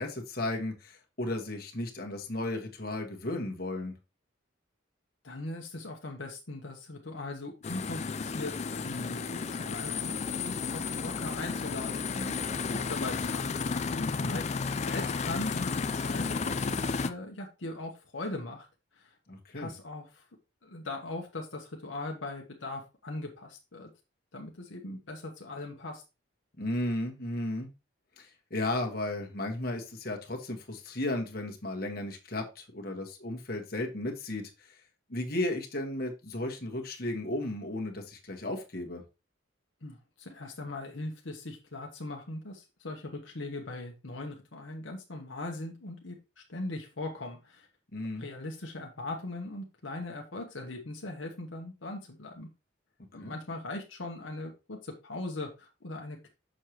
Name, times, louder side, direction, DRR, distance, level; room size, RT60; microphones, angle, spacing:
voice 1, 0.0-3.9 14.0-14.4 19.3-19.7 26.6-27.7 28.2-34.7 35.1-39.0 47.9-48.2 53.2-53.3, left 1 dB, 50° left, 2 dB, 1.4 m, -34 dB
voice 2, 5.2-13.6 14.3-14.4 14.7-18.7 18.9-19.2 19.5-20.3 20.6-23.9 24.3-26.0 39.8-47.7 48.2-52.5 53.1-56.3, left 2 dB, 75° left, 2 dB, 1.1 m, -40 dB
sound 1, 7.6-17.1, left 5 dB, 35° left, 0.4 m, -33 dB
6.5 x 6.3 x 3.0 m, 0.28 s
head